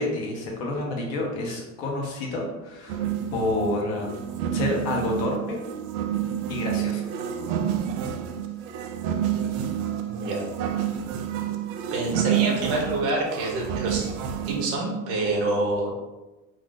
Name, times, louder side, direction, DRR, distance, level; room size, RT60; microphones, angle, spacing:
voice 1, 0.0-3.0 3.3-4.2 4.5-5.6 6.5-7.0, left 2 dB, 45° left, 0 dB, 0.7 m, -29 dB
sound 1, 2.9-14.8, right 9 dB, 85° right, 0.5 m, -29 dB
voice 2, 10.1-10.4 11.9-14.1 14.5-15.9, right 2 dB, 35° right, 0 dB, 0.6 m, -26 dB
2.4 x 2.4 x 3.7 m, 1.1 s
supercardioid pair, 170°, 42 cm